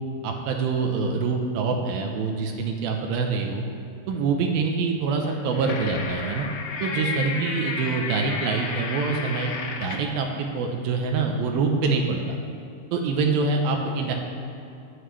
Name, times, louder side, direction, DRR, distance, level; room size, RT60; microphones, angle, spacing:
voice 1, 0.2-3.6 4.1-6.5 6.8-9.5 9.8-12.4 12.9-14.1, right 4 dB, 75° right, 3 dB, 2.5 m, -25 dB
sound 1, 5.3-10.1, left 4 dB, 85° left, 3.3 m, -32 dB
19.0 x 8.0 x 3.2 m, 2.6 s
omnidirectional pair, 4.6 m